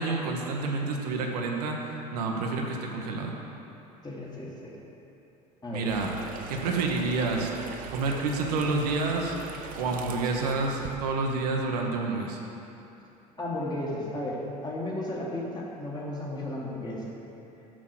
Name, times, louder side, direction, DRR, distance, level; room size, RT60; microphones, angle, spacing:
voice 1, 0.0-1.8 2.1-3.3 5.7-6.1 6.5-7.5 7.9-9.4 9.8-12.4, right 3 dB, 70° right, 1 dB, 0.9 m, -28 dB
voice 2, 4.0-4.7 5.6-5.9 13.4-17.1, left 1 dB, 20° left, -4 dB, 1.8 m, -34 dB
sound 1, 5.9-11.0, right 6 dB, 45° right, 0.7 m, -41 dB
6.2 x 6.1 x 6.0 m, 2.9 s
hypercardioid pair, 70°, 21 cm